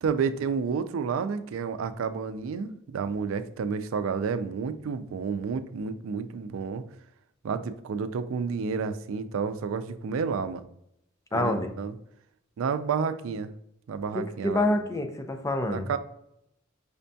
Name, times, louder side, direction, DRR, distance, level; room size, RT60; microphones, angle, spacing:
voice 1, 0.0-6.8 7.4-10.6 11.3-11.9 12.6-13.5 13.9-14.7 15.7-16.0, right 5 dB, 85° right, 11 dB, 0.3 m, -30 dB
voice 2, 11.3-11.7 14.1-15.9, left 1 dB, 15° left, 5 dB, 0.4 m, -27 dB
5.1 x 2.2 x 2.6 m, 0.78 s
head